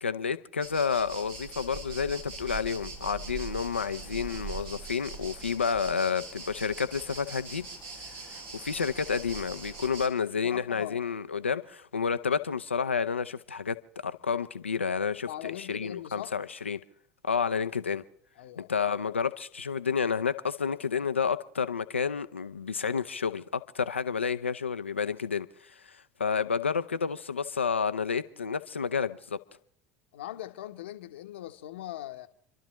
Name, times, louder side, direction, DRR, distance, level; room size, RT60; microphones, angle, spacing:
voice 1, 0.0-7.7 8.2-13.8 14.0-16.8 17.2-18.0 18.6-29.4, left 6 dB, 90° left, 0.6 m, -30 dB
sound 1, 0.6-10.1, right 4 dB, 65° right, 3.0 m, -42 dB
voice 2, 10.4-11.2 15.2-16.3 18.4-18.7 30.1-32.3, left 13 dB, 75° left, 1.0 m, -41 dB
29.5 x 12.0 x 3.1 m
hypercardioid pair, 70°, 6 cm